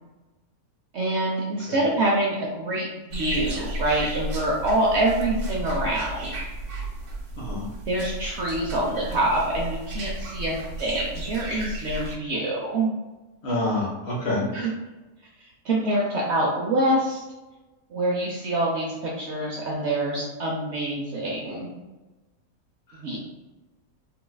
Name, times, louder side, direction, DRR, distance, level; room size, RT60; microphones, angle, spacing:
voice 1, 0.9-6.3 7.9-10.5 10.8-13.0 14.5-14.7 15.6-17.2 17.9-21.7 22.9-23.2, right 1 dB, 65° right, -2 dB, 0.7 m, -25 dB
sound 1, 3.1-12.2, right 1 dB, 80° right, 1.2 m, -34 dB
voice 2, 13.4-14.5 22.9-23.2, left 1 dB, 55° left, -4 dB, 0.8 m, -28 dB
3.9 x 2.3 x 2.2 m, 1.1 s
omnidirectional pair, 1.6 m